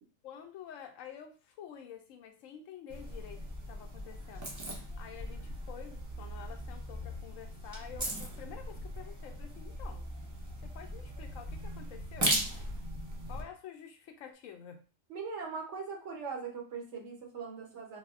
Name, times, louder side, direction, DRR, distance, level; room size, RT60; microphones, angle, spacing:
voice 1, 0.2-10.1 10.6-12.3 13.3-14.8, left 8 dB, 85° left, 5 dB, 1.0 m, -49 dB
sound 1, 2.9-13.4, right 1 dB, 30° right, 0.3 m, -38 dB
voice 2, 15.1-18.0, right 5 dB, 65° right, 1 dB, 1.0 m, -40 dB
3.9 x 2.0 x 2.4 m, 0.36 s
omnidirectional pair, 1.3 m